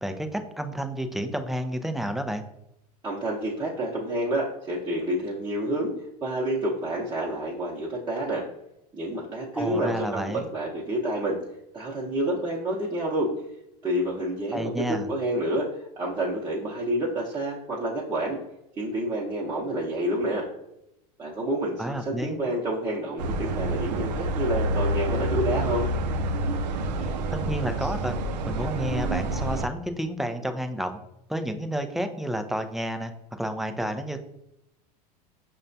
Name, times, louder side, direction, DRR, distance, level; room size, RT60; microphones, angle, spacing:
voice 1, 0.0-2.4 9.5-10.4 14.5-15.1 21.8-22.4 27.3-28.2 28.5-31.0 31.3-34.2, equal, ahead, 6 dB, 0.3 m, -30 dB
voice 2, 3.0-5.9 6.2-8.4 8.9-11.4 11.7-13.3 13.8-18.4 18.8-20.5 21.2-25.9, right 1 dB, 20° right, -5 dB, 0.8 m, -28 dB
sound 1, 23.2-29.7, right 1 dB, 90° right, 0.4 m, -28 dB
5.3 x 2.2 x 2.6 m, 0.84 s
hypercardioid pair, 105°, 21 cm